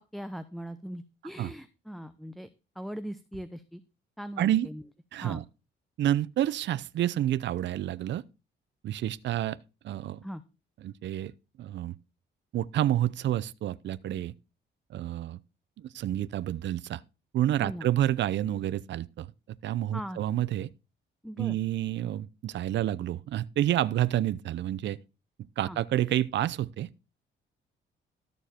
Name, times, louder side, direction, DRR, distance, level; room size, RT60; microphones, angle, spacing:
voice 1, 0.1-2.5 2.8-3.8 4.2-4.8 5.2-5.4 10.2-10.4 17.6-17.9 19.9-20.2 21.2-21.6 25.6-25.8, equal, ahead, 0.8 m, -40 dB
voice 2, 4.4-4.7 5.1-5.4 6.0-8.2 8.8-9.6 9.8-10.2 10.8-11.3 11.6-11.9 12.5-14.3 14.9-15.4 15.8-17.0 17.3-19.3 19.6-20.7 21.4-25.0 25.6-26.9, right 12 dB, 65° right, 0.6 m, -29 dB
13.0 x 7.1 x 4.4 m
cardioid pair, 90°, 20 cm